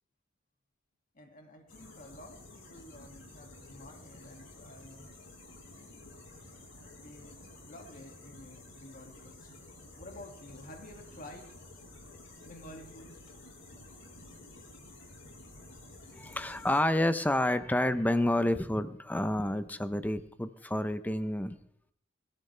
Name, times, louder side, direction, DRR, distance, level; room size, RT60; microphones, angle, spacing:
voice 1, 1.1-5.1 5.6-6.1 7.0-9.5 10.0-11.6 12.4-13.1, left 1 dB, 45° left, 3 dB, 2.3 m, -51 dB
sound 1, 1.7-16.8, left 2 dB, 65° left, 6.6 m, -52 dB
voice 2, 16.1-21.6, left 1 dB, 10° left, 12 dB, 0.7 m, -29 dB
22.5 x 13.0 x 3.4 m, 0.65 s
head